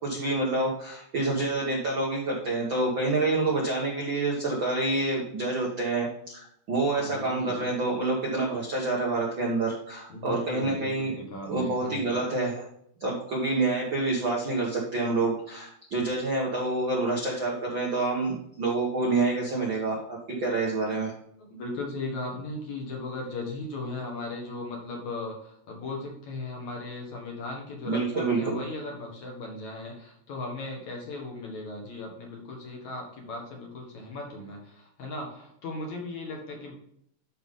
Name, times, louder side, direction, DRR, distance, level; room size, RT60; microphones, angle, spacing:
voice 1, 0.0-11.1 11.5-12.7 13.0-21.1 27.8-28.6, right 2 dB, 75° right, -2 dB, 1.1 m, -27 dB
voice 2, 6.9-7.8 10.1-12.2 21.4-36.7, left 2 dB, 55° left, -1 dB, 2.5 m, -37 dB
12.0 x 5.4 x 3.8 m, 0.71 s
omnidirectional pair, 4.9 m